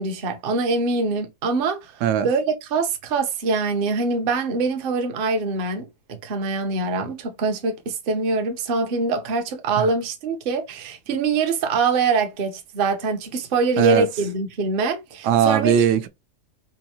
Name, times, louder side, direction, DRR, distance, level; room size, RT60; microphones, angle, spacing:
voice 1, 0.0-5.9 6.2-15.7, right 4 dB, 50° right, 0.7 m, -24 dB
voice 2, 15.2-16.1, right 9 dB, 80° right, 1.2 m, -19 dB
4.3 x 2.7 x 2.8 m
omnidirectional pair, 1.8 m